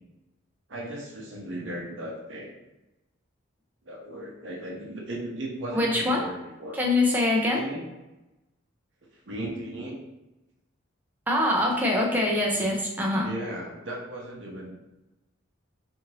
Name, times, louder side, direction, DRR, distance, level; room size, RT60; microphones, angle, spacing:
voice 1, 0.7-2.5 3.8-6.8 7.5-7.9 9.3-10.0 13.2-14.8, right 1 dB, 60° right, -2 dB, 0.7 m, -36 dB
voice 2, 5.7-6.2 6.7-7.6 11.3-13.3, left 1 dB, 10° right, -2 dB, 0.4 m, -24 dB
2.7 x 2.5 x 3.0 m, 1.0 s
head